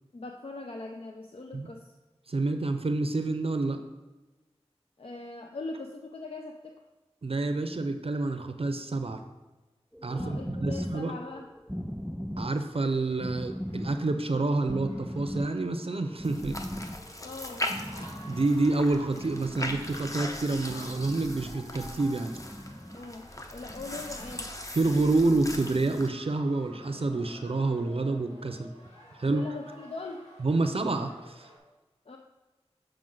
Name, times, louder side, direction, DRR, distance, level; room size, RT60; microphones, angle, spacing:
voice 1, 0.1-1.9 5.0-6.8 10.1-11.5 17.2-17.7 22.9-24.5 29.3-30.3 32.1-32.2, left 3 dB, 60° left, 2 dB, 0.6 m, -41 dB
voice 2, 2.3-3.8 7.2-9.2 10.0-11.1 12.4-16.6 18.3-22.4 24.8-28.7 29.2-29.4 30.4-31.5, right 2 dB, 60° right, 7 dB, 0.6 m, -28 dB
sound 1, 9.9-18.7 19.0-20.1 20.7-21.4 22.2-23.0 23.7-24.4 25.2-25.9 26.7-27.3, equal, ahead, 0.3 m, -40 dB
sound 2, 12.8-31.6, equal, 80° left, 1.6 m, -53 dB
sound 3, 16.2-26.1, left 1 dB, 30° left, 0.9 m, -39 dB
7.6 x 4.9 x 3.9 m, 1.2 s
wide cardioid pair, 40°, 11 cm